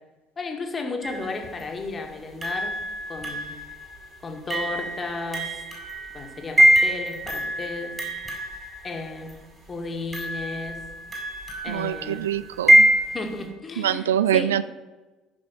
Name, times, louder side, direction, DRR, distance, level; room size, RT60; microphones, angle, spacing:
voice 1, 0.4-2.7 3.1-3.5 4.2-5.6 6.1-8.0 8.8-9.3 9.7-10.8 11.6-12.2 13.1-14.5, left 3 dB, 25° left, 2 dB, 2.0 m, -33 dB
sound 1, 1.0-1.6 2.4-9.3 10.1-13.4, equal, 25° right, 4.6 m, -24 dB
voice 2, 11.7-12.9 13.8-14.6, right 10 dB, 70° right, 16 dB, 0.3 m, -24 dB
14.5 x 6.2 x 5.8 m, 1.2 s
figure-of-eight pair, 60°, 0 cm